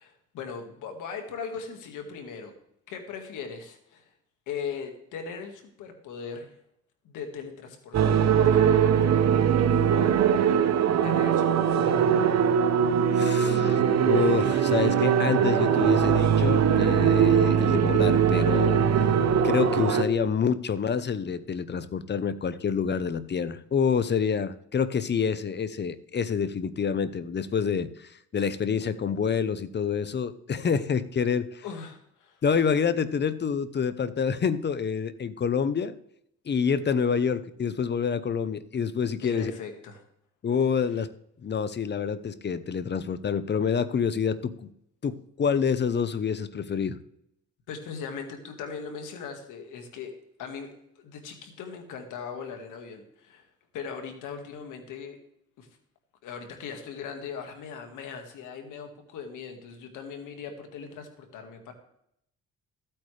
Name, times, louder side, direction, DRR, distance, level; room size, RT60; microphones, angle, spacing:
voice 1, 0.0-2.5 2.9-4.0 4.5-6.5 7.0-10.6 11.0-12.5 31.6-32.4 39.2-40.0 47.7-50.1 50.4-53.5 53.7-55.2 55.6-55.7 56.2-61.7, left 6 dB, 90° left, 4 dB, 1.9 m, -39 dB
sound 1, 7.9-20.0, right 8 dB, 60° right, 0.9 m, -21 dB
voice 2, 13.2-18.8 19.4-31.6 32.4-35.9 36.5-39.5 40.4-41.1 41.4-44.7 45.0-47.0, left 6 dB, 35° left, 14 dB, 0.8 m, -27 dB
14.5 x 8.7 x 3.3 m, 0.74 s
cardioid pair, 90°, 30 cm